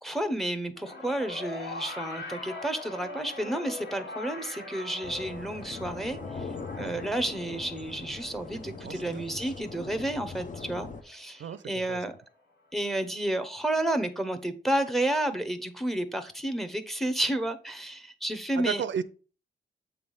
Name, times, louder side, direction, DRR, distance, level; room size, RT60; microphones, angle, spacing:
voice 1, 0.0-6.5 6.8-12.2 12.7-18.8, right 1 dB, ahead, 0.8 m, -31 dB
sound 1, 0.8-11.2 12.2-12.3, left 2 dB, 80° left, 1.9 m, -42 dB
sound 2, 5.0-11.0, left 4 dB, 45° left, 0.7 m, -41 dB
voice 2, 8.8-9.2 11.4-11.6 11.9-12.0 18.6-19.0, right 8 dB, 85° right, 0.5 m, -33 dB
7.7 x 3.4 x 5.4 m
wide cardioid pair, 145°, 19 cm